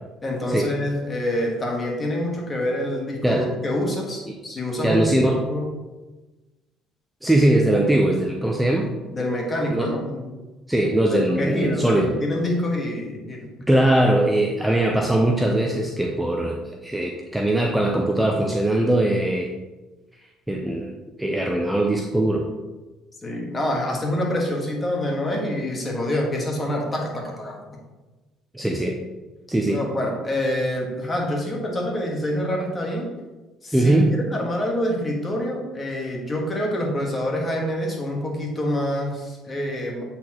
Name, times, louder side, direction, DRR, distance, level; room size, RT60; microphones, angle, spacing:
voice 1, 0.2-5.7 9.1-10.3 11.1-13.5 23.2-27.6 29.6-33.1 33.6-40.0, left 1 dB, 25° left, 0 dB, 1.5 m, -26 dB
voice 2, 4.8-5.4 7.2-8.9 9.7-9.9 10.7-12.1 13.7-19.5 20.5-20.9 21.2-22.5 28.5-29.0 29.5-29.8 33.7-34.1, right 1 dB, 5° right, 0 dB, 0.6 m, -21 dB
8.1 x 4.2 x 3.0 m, 1.2 s
cardioid pair, 105°, 0 cm